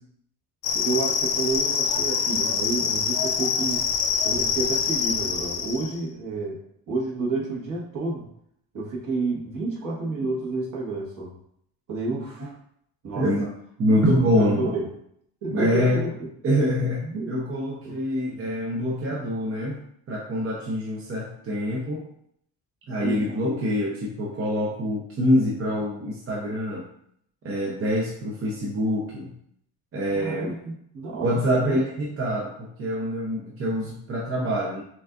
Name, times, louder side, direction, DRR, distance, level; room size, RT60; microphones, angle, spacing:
sound 1, 0.6-6.0, left 6 dB, 85° left, 0.7 m, -25 dB
voice 1, 0.7-3.8 4.2-8.3 8.7-11.4 11.9-12.6 13.0-13.3 14.1-14.9 15.4-16.3 17.0-17.3 17.8-17.9 18.3-18.4 23.0-23.4 30.1-31.8, right 3 dB, 50° right, -4 dB, 1.4 m, -30 dB
voice 2, 13.1-13.5 13.8-14.6 15.5-16.0 16.4-19.8 20.1-22.0 22.9-26.9 27.4-29.3 29.9-30.5 31.2-34.8, equal, 35° right, -4 dB, 0.7 m, -25 dB
6.0 x 2.5 x 2.4 m, 0.71 s
cardioid pair, 135°, 41 cm